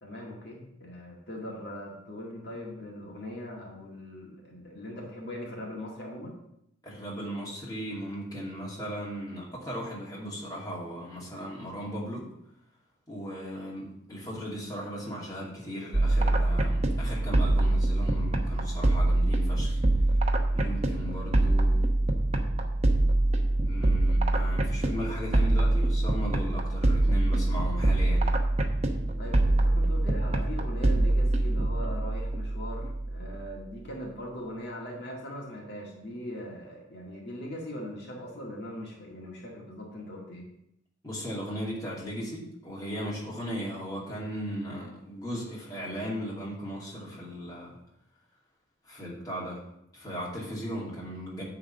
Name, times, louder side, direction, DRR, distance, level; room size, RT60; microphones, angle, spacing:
voice 1, 0.0-6.4 29.2-40.4, left 1 dB, 55° left, -3 dB, 1.9 m, -40 dB
voice 2, 6.8-12.3 13.1-19.8 20.5-21.9 23.6-28.4 41.0-47.8 48.8-49.6 49.9-51.4, equal, 20° left, -5 dB, 2.6 m, -37 dB
sound 1, 15.9-33.5, right 2 dB, 35° right, 0.8 m, -25 dB
9.9 x 3.9 x 7.4 m, 0.78 s
head